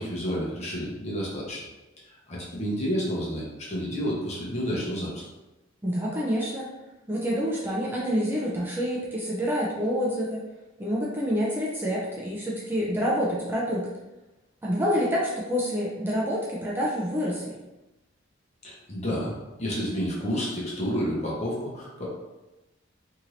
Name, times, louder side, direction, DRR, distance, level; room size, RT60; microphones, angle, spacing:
voice 1, 0.0-1.6 2.1-3.4 3.7-5.3 18.6-19.3 19.6-22.1, equal, 35° left, -5 dB, 0.8 m, -30 dB
voice 2, 5.8-6.7 7.1-10.4 10.8-13.9 14.6-17.6, equal, 10° right, -5 dB, 0.4 m, -27 dB
2.8 x 2.6 x 3.1 m, 1.0 s
head